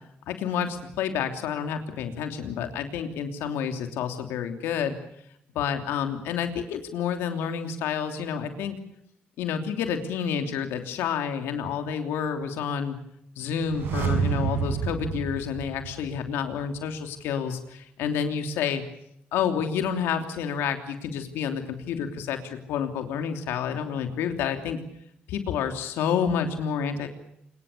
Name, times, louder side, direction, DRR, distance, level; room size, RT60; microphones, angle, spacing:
voice 1, 0.3-4.9 5.5-8.8 9.4-13.0 13.4-18.8 19.3-24.8 25.3-27.1, left 7 dB, 90° left, 6 dB, 3.1 m, -29 dB
sound 1, 13.6-16.5 16.7-16.8, right 6 dB, 75° right, 5.8 m, -29 dB
26.0 x 22.0 x 6.8 m, 0.74 s
cardioid pair, 80°, 4 cm